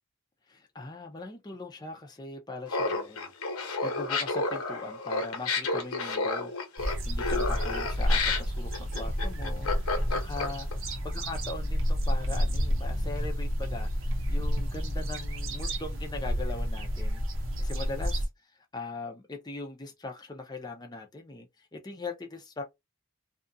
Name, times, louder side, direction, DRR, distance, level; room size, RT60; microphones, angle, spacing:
voice 1, 0.5-18.3 18.7-22.6, left 3 dB, 20° left, 0.6 m, -41 dB
Laughter, 2.7-10.7, left 3 dB, 90° left, 1.0 m, -30 dB
sound 1, 6.8-18.3, equal, 60° right, 0.8 m, -30 dB
2.8 x 2.4 x 2.6 m
head